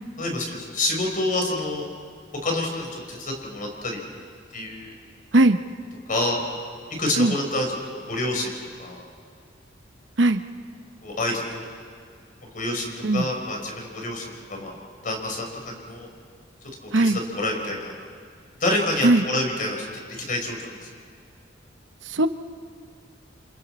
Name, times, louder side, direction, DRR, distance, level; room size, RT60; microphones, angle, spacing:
voice 1, 0.2-1.9 2.4-4.0 4.5-4.9 6.1-6.4 7.0-7.6 8.1-9.0 11.0-11.7 12.4-14.8 15.0-16.1 17.0-17.9 18.6-20.9, left 1 dB, 45° left, 1 dB, 4.1 m, -28 dB
voice 2, 5.3-5.6 7.2-7.3 10.2-10.4 13.0-13.3 16.9-17.2 19.0-19.2 22.0-22.3, right 2 dB, 75° right, 9 dB, 0.9 m, -18 dB
29.0 x 26.5 x 4.3 m, 2.1 s
head